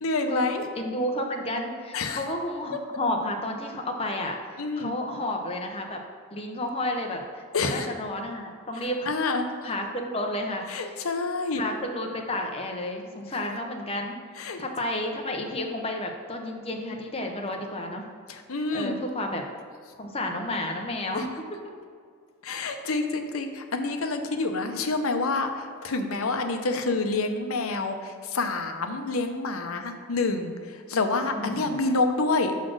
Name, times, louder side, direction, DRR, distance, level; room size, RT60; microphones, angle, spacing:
voice 1, 0.0-0.6 1.9-2.2 4.6-4.9 7.5-7.9 9.1-9.5 10.7-11.6 14.4-14.6 18.3-19.0 21.1-21.2 22.4-32.5, left 3 dB, 75° left, 6 dB, 0.7 m, -28 dB
voice 2, 0.8-6.0 6.3-9.1 9.6-11.0 11.5-18.0 18.7-19.4 20.0-21.3 31.4-31.8, left 1 dB, 25° left, 2 dB, 0.7 m, -31 dB
6.2 x 4.1 x 6.3 m, 2.1 s
head